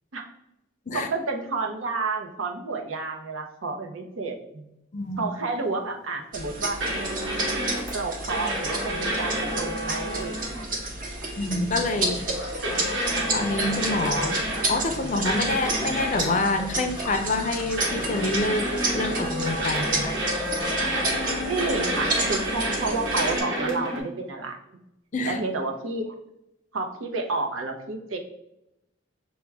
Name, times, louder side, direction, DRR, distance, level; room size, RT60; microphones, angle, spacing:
voice 1, 0.9-4.6 5.2-6.8 7.9-10.6 21.4-24.6 25.3-26.1 26.7-28.2, right 3 dB, 85° right, 3 dB, 0.7 m, -30 dB
voice 2, 4.9-5.3 11.4-12.2 13.3-14.4 14.7-20.2 25.1-25.4, left 2 dB, 40° left, 6 dB, 0.4 m, -27 dB
sound 1, 6.3-23.4, right 2 dB, 40° right, 0.7 m, -31 dB
sound 2, 6.8-7.9 8.3-10.6 11.2-11.3 12.6-14.9 15.2-16.4 17.8-24.0, right 1 dB, 65° right, 1.6 m, -29 dB
sound 3, 11.7-21.0, equal, 20° right, 1.0 m, -40 dB
5.9 x 2.2 x 3.3 m, 0.85 s
head